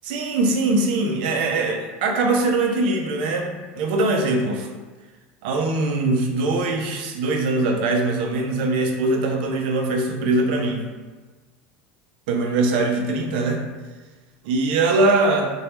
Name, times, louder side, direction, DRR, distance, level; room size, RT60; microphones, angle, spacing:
voice 1, 0.0-4.7 5.4-10.9 12.3-13.6 14.4-15.5, right 2 dB, 70° right, 2 dB, 0.4 m, -22 dB
2.2 x 2.0 x 2.9 m, 1.3 s
cardioid pair, 175°, 5 cm